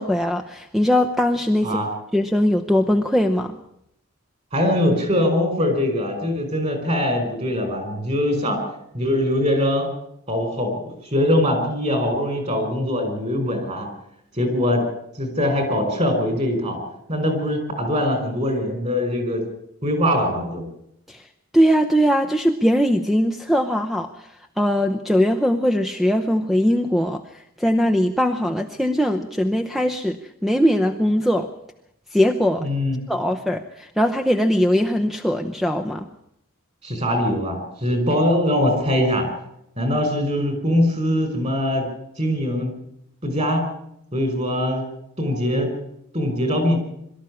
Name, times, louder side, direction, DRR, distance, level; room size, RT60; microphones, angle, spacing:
voice 1, 0.0-1.8 2.1-3.6 21.1-21.3 21.5-31.5 32.1-32.7 33.1-36.1, equal, ahead, 7 dB, 0.7 m, -20 dB
voice 2, 4.5-8.6 8.9-9.9 10.3-10.8 11.1-13.9 14.4-14.9 15.2-16.8 17.1-19.5 19.8-20.7 32.6-33.0 36.8-39.3 39.8-41.9 42.2-42.7 43.2-43.7 44.1-44.8 45.2-45.7 46.1-46.8, left 1 dB, 30° right, 7 dB, 5.2 m, -22 dB
23.0 x 13.5 x 9.8 m, 0.78 s
head